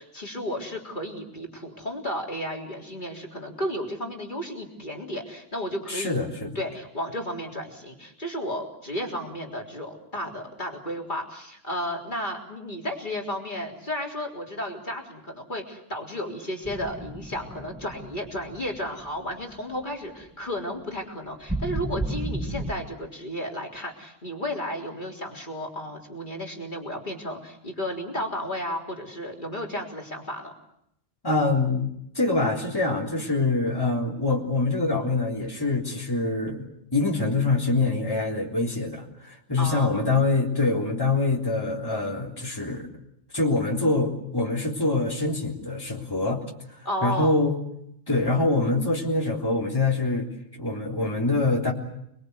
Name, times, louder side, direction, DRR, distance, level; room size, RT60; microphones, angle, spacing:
voice 1, 0.0-6.2 6.6-30.5 39.6-40.0 46.8-47.3, equal, 40° left, 0 dB, 3.9 m, -33 dB
voice 2, 5.9-6.5 31.2-31.9 32.2-36.6 36.9-42.9 43.3-46.4 47.0-47.5 48.1-50.3 50.6-51.7, left 3 dB, 20° left, -2 dB, 3.7 m, -25 dB
sound 1, 16.6-19.4 19.8-19.9 21.5-22.7, right 1 dB, 5° right, 2.1 m, -33 dB
29.5 x 21.5 x 8.1 m, 0.77 s
omnidirectional pair, 1.3 m